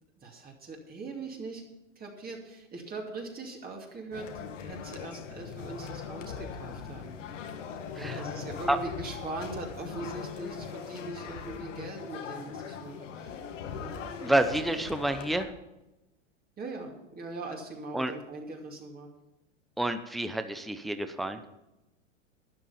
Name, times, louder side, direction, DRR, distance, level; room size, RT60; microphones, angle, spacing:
voice 1, 0.2-1.6 2.0-4.3 4.6-7.1 7.9-13.4 13.7-13.9 16.6-19.1, right 3 dB, 25° right, 0 dB, 2.5 m, -41 dB
sound 1, 4.1-15.5, left 7 dB, 75° left, 1.9 m, -40 dB
voice 2, 14.2-15.5 17.9-18.1 19.8-21.4, right 1 dB, ahead, 9 dB, 0.7 m, -28 dB
12.5 x 9.8 x 5.7 m, 0.97 s
hypercardioid pair, 115°, 37 cm